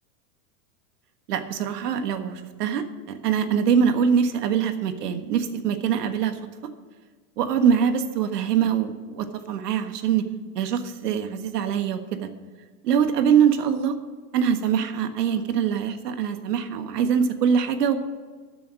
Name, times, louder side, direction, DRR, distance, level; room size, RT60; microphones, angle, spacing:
voice 1, 1.3-6.4 7.4-10.2 10.5-12.3 12.8-13.9 14.3-18.0, right 7 dB, 90° right, 8 dB, 1.5 m, -23 dB
13.5 x 6.9 x 6.4 m, 1.5 s
supercardioid pair, 165°, 46 cm